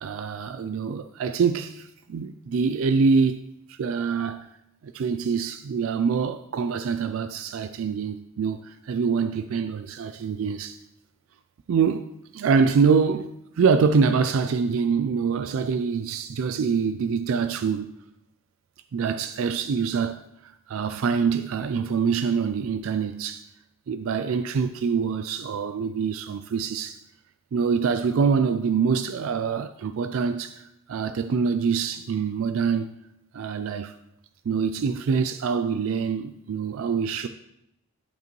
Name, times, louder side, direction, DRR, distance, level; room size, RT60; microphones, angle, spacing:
voice 1, 0.0-3.4 3.7-4.5 4.8-10.8 11.7-12.1 12.3-13.3 13.6-17.9 18.9-23.5 23.9-27.0 27.5-33.0 33.3-33.9 34.5-37.3, right 5 dB, 75° right, 0.3 m, -25 dB
11.5 x 5.1 x 3.1 m
head